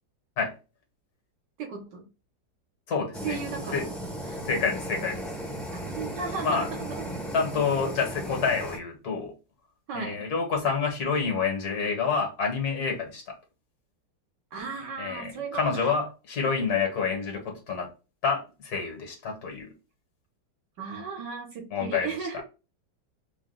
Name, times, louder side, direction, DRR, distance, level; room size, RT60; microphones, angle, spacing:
voice 1, 1.6-2.1 3.2-3.8 4.2-4.4 5.7-7.1 9.9-10.2 14.5-15.9 20.8-22.4, right 5 dB, 75° right, 1.7 m, -36 dB
voice 2, 2.9-3.4 3.7-3.9 4.5-5.2 6.4-6.7 7.3-9.3 9.9-13.3 15.0-17.9 18.2-19.7 21.7-22.4, left 5 dB, 60° left, 1.7 m, -28 dB
Fire, 3.1-8.8, equal, ahead, 0.7 m, -36 dB
4.6 x 2.4 x 3.8 m
omnidirectional pair, 2.0 m